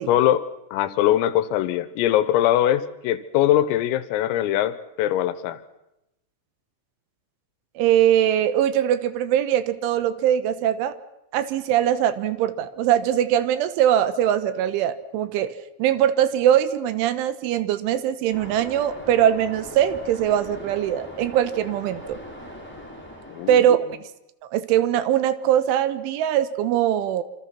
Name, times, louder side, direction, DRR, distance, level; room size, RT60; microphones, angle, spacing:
voice 1, 0.1-5.6 23.3-23.7, left 12 dB, 90° left, 14 dB, 3.8 m, -22 dB
voice 2, 7.8-10.9 11.3-15.5 15.8-22.2 23.5-23.9 24.5-27.2, right 10 dB, 75° right, 13 dB, 3.3 m, -21 dB
Waves surf, 18.3-23.6, equal, ahead, 4.2 m, -40 dB
26.5 x 26.5 x 5.9 m, 0.88 s
omnidirectional pair, 5.9 m